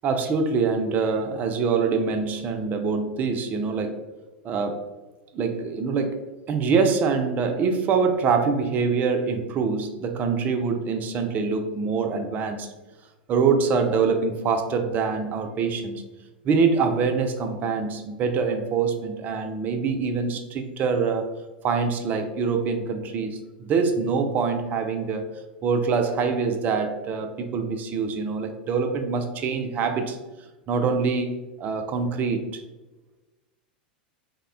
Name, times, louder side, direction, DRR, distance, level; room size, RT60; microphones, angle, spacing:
voice 1, 0.0-4.0 4.4-4.8 5.3-6.2 6.5-12.7 13.3-16.0 16.4-21.3 21.6-25.3 25.6-30.2 30.7-32.6, right 5 dB, 35° right, 6 dB, 0.4 m, -24 dB
3.4 x 2.1 x 2.4 m, 1.1 s
figure-of-eight pair, 85°, 5 cm